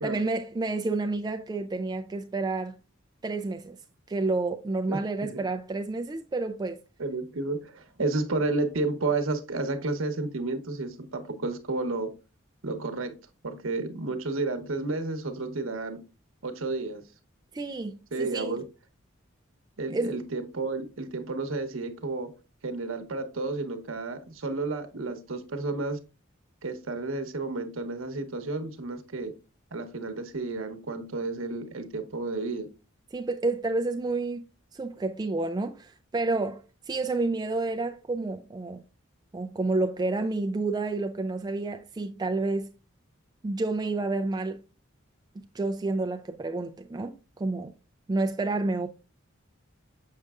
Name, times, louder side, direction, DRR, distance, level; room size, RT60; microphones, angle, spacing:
voice 1, 0.0-2.8 3.2-3.8 4.1-6.8 17.5-18.6 19.9-20.1 33.1-34.4 34.7-38.8 39.3-42.7 43.4-44.6 45.5-47.7 48.1-48.9, right 3 dB, 20° right, 0.3 m, -29 dB
voice 2, 4.9-5.4 7.0-12.1 12.6-13.1 13.4-16.0 16.4-17.0 18.1-18.6 19.8-22.3 22.6-26.0 26.6-29.3 29.7-32.7, right 3 dB, 80° right, 0.9 m, -31 dB
6.5 x 6.4 x 2.4 m
head